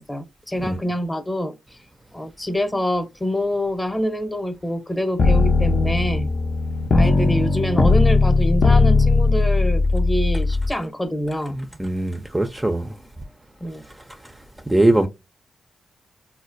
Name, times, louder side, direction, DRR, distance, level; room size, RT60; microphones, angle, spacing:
voice 1, 0.0-1.8 2.1-6.3 6.9-11.6 13.6-13.8, equal, 15° left, 0.8 m, -26 dB
sound 1, 5.2-10.7, left 3 dB, 55° left, 0.5 m, -18 dB
voice 2, 11.5-12.9 14.7-15.1, right 1 dB, 10° right, 0.4 m, -21 dB
4.1 x 2.1 x 2.5 m
supercardioid pair, 55°, 0 cm